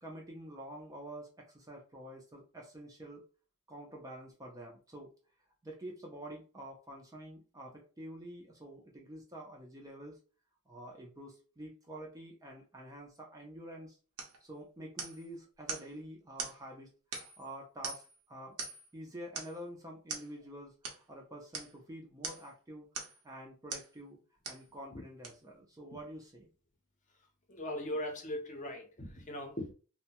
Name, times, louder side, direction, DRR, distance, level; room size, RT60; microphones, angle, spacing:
voice 1, 0.0-3.2 3.7-5.1 5.6-10.2 10.7-14.0 14.4-16.9 17.4-18.0 18.3-18.6 18.9-22.9 23.2-24.2 24.5-26.5, right 1 dB, 15° right, 0.4 m, -48 dB
sound 1, 14.2-14.4 15.0-15.3 15.7-15.9 16.4-16.6 17.1-17.5 17.8-18.2 18.6-18.9 19.4-19.6 20.1-20.3 20.8-21.0 21.5-21.7 22.2-22.5 22.9-23.2 23.7-23.9 24.4-24.7 25.2-25.3, right 5 dB, 90° right, 0.7 m, -41 dB
voice 2, 27.5-29.7, left 1 dB, 35° left, 0.6 m, -39 dB
2.6 x 2.1 x 2.8 m
head